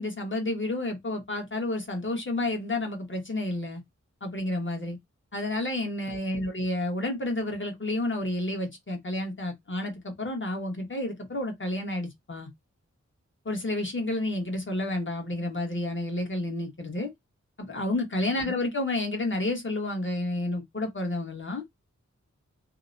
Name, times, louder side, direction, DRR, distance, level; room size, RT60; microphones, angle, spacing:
voice 1, 0.0-3.8 4.2-5.0 5.3-12.5 13.4-17.1 17.6-21.6, left 1 dB, 40° left, 1.1 m, -30 dB
2.8 x 2.0 x 2.5 m
wide cardioid pair, 50°, 29 cm